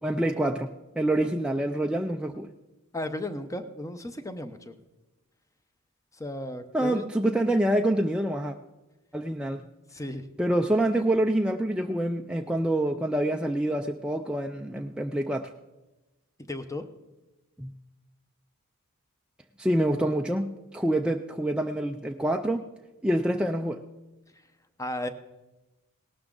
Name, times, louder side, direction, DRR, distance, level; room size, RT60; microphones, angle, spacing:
voice 1, 0.0-2.5 6.7-8.6 9.1-9.6 10.4-15.5 17.6-17.7 19.6-22.6 23.0-23.8, right 1 dB, 5° right, 2 dB, 0.4 m, -26 dB
voice 2, 2.9-4.7 6.1-7.0 9.9-10.3 16.5-16.9 24.8-25.1, left 1 dB, 15° left, 10 dB, 0.7 m, -34 dB
18.0 x 12.0 x 3.8 m, 1.1 s
head